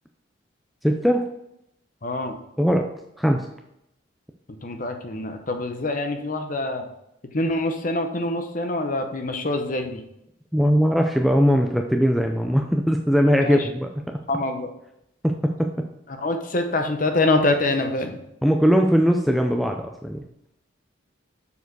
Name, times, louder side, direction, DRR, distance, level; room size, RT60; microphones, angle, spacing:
voice 1, 0.8-1.2 2.6-2.9 3.2-3.5 10.5-14.2 15.2-15.7 18.4-20.2, equal, ahead, 3 dB, 0.3 m, -20 dB
voice 2, 2.0-2.4 4.6-6.9 7.3-10.0 13.4-13.7 14.3-14.7 16.1-18.2, left 2 dB, 40° left, 6 dB, 0.8 m, -25 dB
7.0 x 4.5 x 4.6 m, 0.81 s
head